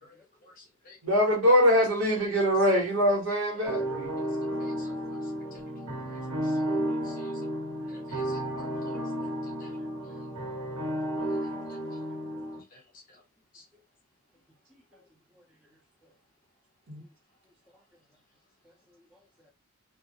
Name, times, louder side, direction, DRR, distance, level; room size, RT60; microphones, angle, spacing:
voice 1, 0.4-1.0 4.6-6.7 7.0-7.3 7.9-9.0 9.6-9.7 10.0-10.2 11.4-11.8 12.7-12.8 13.1-13.2 13.5-13.6, left 3 dB, 40° left, 0.7 m, -56 dB
voice 2, 1.0-4.1 16.9-17.0, equal, 65° right, 1.1 m, -23 dB
sound 1, 3.7-12.6, right 1 dB, 85° right, 1.1 m, -32 dB
voice 3, 18.6-19.5, left 1 dB, 5° right, 0.4 m, -61 dB
2.2 x 2.0 x 2.7 m
head